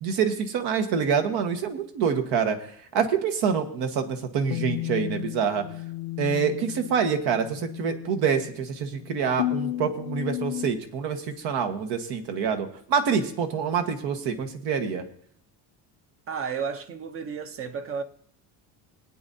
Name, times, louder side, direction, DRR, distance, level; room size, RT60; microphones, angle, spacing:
voice 1, 0.0-5.6 6.2-15.0, right 6 dB, 75° right, 1.4 m, -26 dB
sound 1, 4.5-10.7, left 15 dB, 85° left, 0.6 m, -34 dB
voice 2, 16.3-18.0, right 6 dB, 35° right, 0.7 m, -32 dB
21.0 x 8.9 x 2.7 m
cardioid pair, 160°, 40 cm